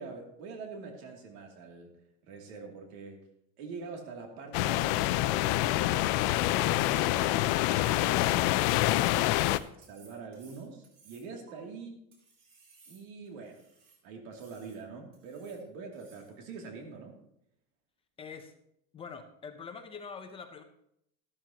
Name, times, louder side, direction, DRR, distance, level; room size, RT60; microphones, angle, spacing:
voice 1, 0.0-1.9 2.2-3.2 3.6-8.5 8.9-9.4 9.9-12.0 12.9-13.6 14.0-17.2, right 4 dB, 90° right, 1 dB, 2.8 m, -45 dB
sound 1, 4.5-9.6, left 16 dB, 70° left, 0.5 m, -26 dB
sound 2, 6.1-8.2 8.9-11.5 12.1-14.0 14.3-14.8 15.1-15.6 15.9-16.4, right 5 dB, 50° right, 3.5 m, -60 dB
voice 2, 18.2-18.5 18.9-20.6, left 6 dB, 20° left, 6 dB, 0.6 m, -44 dB
13.5 x 12.0 x 2.9 m, 0.76 s
cardioid pair, 175°, 30 cm